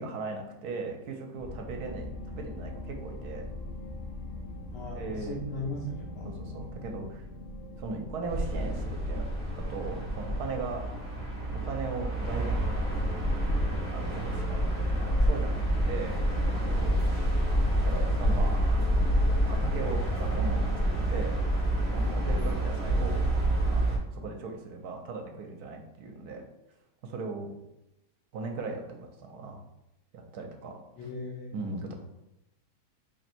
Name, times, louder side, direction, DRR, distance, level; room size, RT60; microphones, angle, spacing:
voice 1, 0.0-3.5 4.9-5.4 6.2-7.2 7.8-9.3 9.5-10.8 11.5-12.8 13.9-15.6 15.8-16.2 16.7-17.1 17.8-19.0 19.4-21.4 21.9-23.2 23.7-26.4 27.0-27.5 28.3-29.6 30.1-31.1 31.5-31.9, right 4 dB, 70° right, 3 dB, 1.1 m, -38 dB
sound 1, 1.4-16.8, left 2 dB, 70° left, 0.7 m, -43 dB
voice 2, 4.7-6.3 31.0-31.6, left 1 dB, 85° left, -4 dB, 1.3 m, -38 dB
sound 2, 8.3-24.0, right 1 dB, 5° right, 1.0 m, -28 dB
4.2 x 3.1 x 2.5 m, 0.90 s
omnidirectional pair, 1.8 m